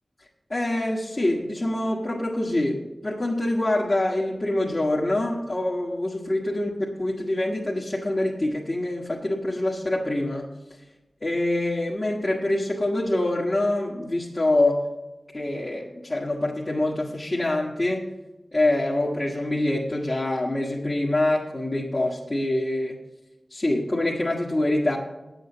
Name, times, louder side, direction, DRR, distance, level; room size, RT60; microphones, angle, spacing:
voice 1, 0.5-10.5 11.2-14.8 15.3-18.1 18.5-23.0 23.5-25.0, left 1 dB, 40° left, -4 dB, 1.5 m, -25 dB
9.1 x 7.9 x 6.7 m, 1.1 s
wide cardioid pair, 65°, 0 cm